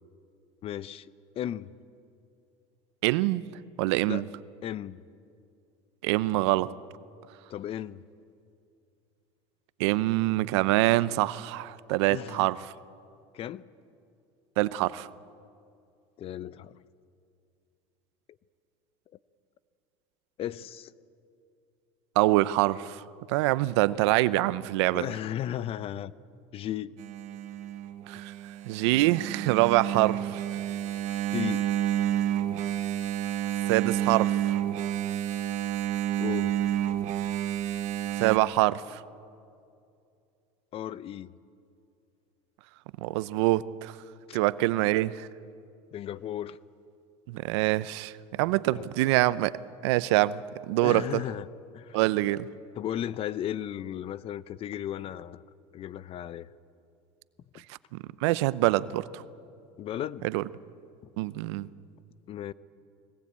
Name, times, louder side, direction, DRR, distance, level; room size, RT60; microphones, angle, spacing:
voice 1, 0.6-1.1 1.4-1.7 4.1-4.2 4.6-5.0 7.5-8.0 12.1-12.5 13.3-13.6 16.2-16.8 20.4-20.9 24.9-26.1 26.5-27.0 28.1-28.2 31.3-31.7 36.2-36.6 40.7-41.3 44.3-44.4 45.9-46.6 48.7-48.9 50.8-51.5 51.7-52.0 52.7-55.4 55.7-56.5 59.8-60.3 62.3-62.5, left 11 dB, 40° left, 0.7 m, -35 dB
voice 2, 3.0-3.4 3.8-4.2 6.0-6.7 9.8-12.7 14.6-15.1 22.2-25.1 28.1-28.3 28.7-30.4 33.7-34.6 38.2-39.0 43.0-44.0 44.3-45.3 47.3-49.6 49.8-51.2 51.9-52.5 57.7-59.2 60.2-60.4 61.2-61.7, right 17 dB, 80° right, 0.7 m, -25 dB
Engine, 27.0-38.4, right 11 dB, 55° right, 1.4 m, -30 dB
22.5 x 19.5 x 8.7 m
supercardioid pair, 110°, 14 cm